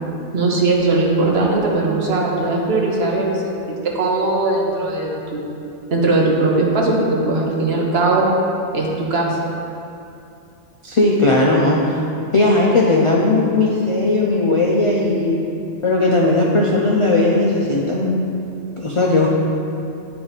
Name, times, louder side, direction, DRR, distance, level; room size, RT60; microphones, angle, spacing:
voice 1, 0.3-3.6 3.9-5.5 5.9-8.3 8.7-9.4, right 2 dB, 60° right, -2 dB, 1.1 m, -19 dB
voice 2, 10.8-11.8 12.3-15.4 15.8-18.2 18.8-19.3, left 2 dB, 50° left, -3 dB, 0.3 m, -17 dB
9.4 x 3.4 x 4.0 m, 2.7 s
omnidirectional pair, 1.3 m